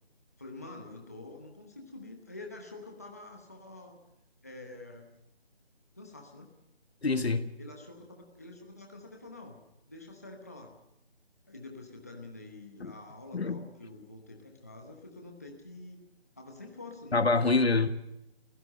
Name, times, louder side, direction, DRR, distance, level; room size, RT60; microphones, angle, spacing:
voice 1, 0.4-4.0 4.4-5.1 5.9-6.5 7.6-10.7 11.5-16.0 16.4-17.2 17.5-17.7, left 2 dB, 15° left, 1 dB, 1.0 m, -47 dB
voice 2, 7.0-7.5 12.8-12.9 13.3-13.6 17.1-17.9, left 3 dB, 75° left, 10 dB, 1.7 m, -25 dB
25.5 x 16.0 x 6.5 m, 0.82 s
figure-of-eight pair, 180°, 32 cm